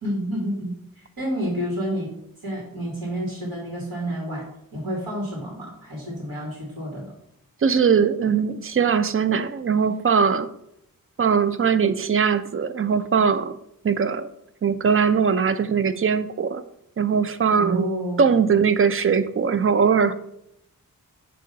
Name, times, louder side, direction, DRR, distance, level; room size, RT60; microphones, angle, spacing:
voice 1, 0.0-2.1 2.4-4.4 4.7-7.1 17.5-18.2, equal, 75° right, -3 dB, 2.2 m, -29 dB
voice 2, 7.6-10.5 11.2-13.5 13.8-14.3 14.6-16.6 17.0-17.9 18.2-20.1, right 6 dB, 40° right, 12 dB, 0.4 m, -20 dB
6.2 x 2.8 x 5.3 m, 0.79 s
wide cardioid pair, 115°, 35 cm